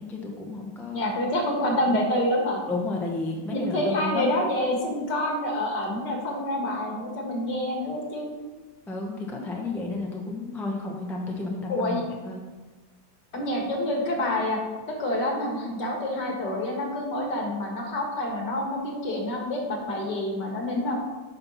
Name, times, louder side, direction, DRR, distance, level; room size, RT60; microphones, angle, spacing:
voice 1, 0.0-1.0 2.7-4.3 8.9-12.4, left 3 dB, ahead, 0 dB, 0.5 m, -32 dB
voice 2, 0.9-2.6 3.5-8.4 11.7-12.0 13.3-14.6 14.9-21.0, left 1 dB, 65° left, 0 dB, 2.1 m, -27 dB
8.8 x 5.8 x 4.2 m, 1.3 s
omnidirectional pair, 2.1 m